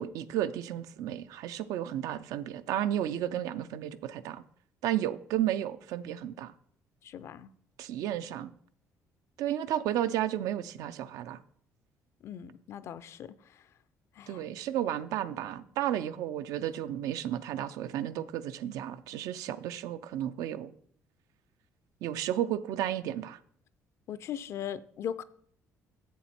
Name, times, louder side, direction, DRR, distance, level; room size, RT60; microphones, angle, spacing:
voice 1, 0.0-4.4 4.8-6.5 7.8-8.5 9.4-11.4 14.3-20.7 22.0-23.4, right 11 dB, 85° right, 0.4 m, -33 dB
voice 2, 7.0-7.5 12.2-13.4 14.2-14.4 24.1-25.2, left 9 dB, 50° left, 0.4 m, -39 dB
7.6 x 7.1 x 4.3 m
cardioid pair, 135°, 6 cm